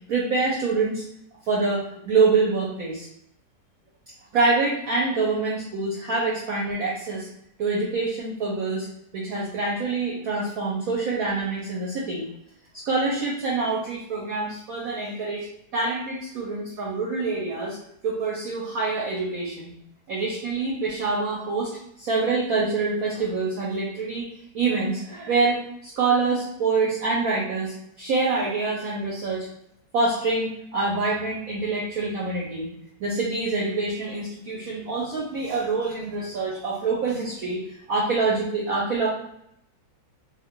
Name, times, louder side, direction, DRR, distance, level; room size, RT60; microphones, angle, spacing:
voice 1, 0.1-1.0 1.5-3.1 4.3-7.3 7.6-8.9 9.1-12.2 12.7-15.5 15.7-17.8 18.0-19.7 20.1-24.3 24.5-29.5 29.9-32.7 33.0-39.1, right 3 dB, 60° right, -5 dB, 1.0 m, -26 dB
2.8 x 2.4 x 3.6 m, 0.75 s
omnidirectional pair, 1.9 m